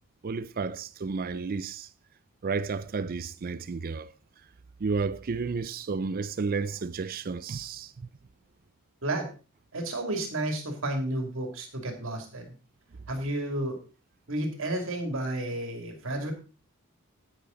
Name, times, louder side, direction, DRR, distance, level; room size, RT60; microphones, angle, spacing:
voice 1, 0.2-1.9 2.4-4.1 4.8-8.1, right 4 dB, 40° right, 0.4 m, -32 dB
voice 2, 9.7-12.5 13.1-13.8 14.3-16.3, right 1 dB, 60° right, 2.7 m, -31 dB
10.0 x 9.3 x 3.9 m
head